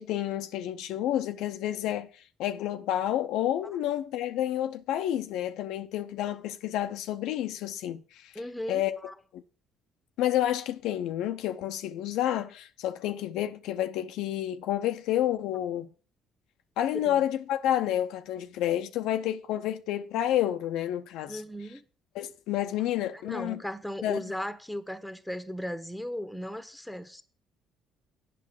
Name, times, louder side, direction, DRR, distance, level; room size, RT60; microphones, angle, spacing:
voice 1, 0.0-2.1 2.4-8.3 8.7-9.0 9.3-9.4 10.2-15.9 16.8-21.4 22.1-23.6 24.0-24.2, left 12 dB, 80° left, 0.7 m, -29 dB
voice 2, 8.3-9.1 17.0-17.2 21.3-21.8 23.1-27.2, left 1 dB, ahead, 1.3 m, -37 dB
8.6 x 5.8 x 8.1 m
supercardioid pair, 75°, 0 cm